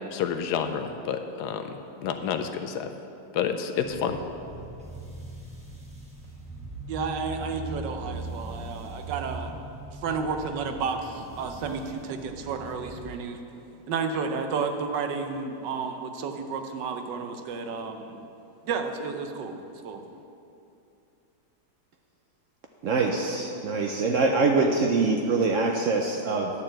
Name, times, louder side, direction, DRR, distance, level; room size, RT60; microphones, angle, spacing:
voice 1, 0.1-2.9 3.3-4.2, left 7 dB, 75° left, 7 dB, 1.1 m, -29 dB
sound 1, 3.8-13.0, right 2 dB, 5° right, 0.8 m, -40 dB
voice 2, 6.9-9.5 10.0-13.4 13.9-18.2 18.7-20.0, right 5 dB, 85° right, 5 dB, 1.4 m, -31 dB
voice 3, 22.8-26.5, right 3 dB, 70° right, 2 dB, 0.8 m, -24 dB
10.0 x 4.4 x 7.5 m, 2.7 s
omnidirectional pair, 1.8 m